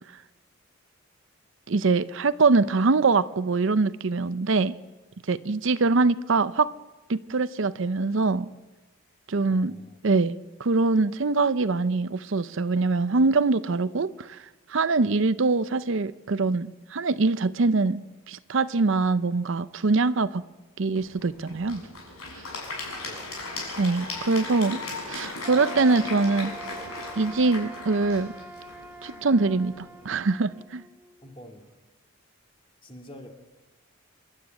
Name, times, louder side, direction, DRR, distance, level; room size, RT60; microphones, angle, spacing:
voice 1, 1.7-4.7 5.3-6.7 7.1-8.5 9.3-9.8 10.0-14.4 14.7-20.4 20.8-21.8 23.8-24.8 25.1-26.5 27.2-28.3 29.0-30.8, right 3 dB, 60° right, 0.6 m, -23 dB
voice 2, 9.4-10.0 22.7-23.5 31.2-31.7 32.8-33.3, equal, 25° left, 2.3 m, -47 dB
Applause / Crowd, 20.9-30.0, left 3 dB, 80° left, 7.0 m, -38 dB
sound 1, 25.4-31.3, right 2 dB, 10° right, 0.7 m, -44 dB
26.5 x 11.5 x 9.1 m
head